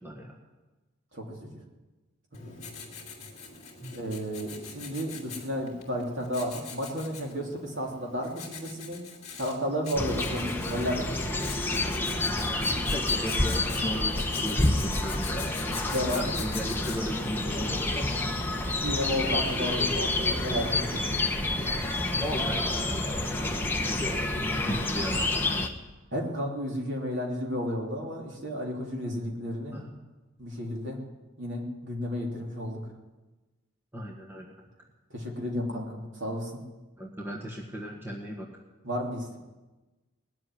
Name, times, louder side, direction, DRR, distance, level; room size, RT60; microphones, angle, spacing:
voice 1, 0.0-0.4 3.8-3.9 12.9-15.5 16.0-17.9 22.2-24.4 24.9-25.3 29.7-29.9 33.9-34.5 37.0-38.5, equal, 10° right, -2 dB, 1.6 m, -36 dB
voice 2, 1.1-1.6 2.4-2.7 3.9-9.0 9.4-11.4 15.9-16.3 18.8-21.2 23.8-24.1 26.1-29.8 30.4-31.0 31.4-32.8 35.1-36.6 38.8-39.4, equal, 55° right, -1 dB, 3.1 m, -32 dB
Writing, 2.3-17.3, left 5 dB, 30° left, 2.7 m, -44 dB
sound 1, 9.9-25.7, left 2 dB, 10° left, 1.0 m, -28 dB
19.0 x 7.7 x 9.9 m, 1.2 s
head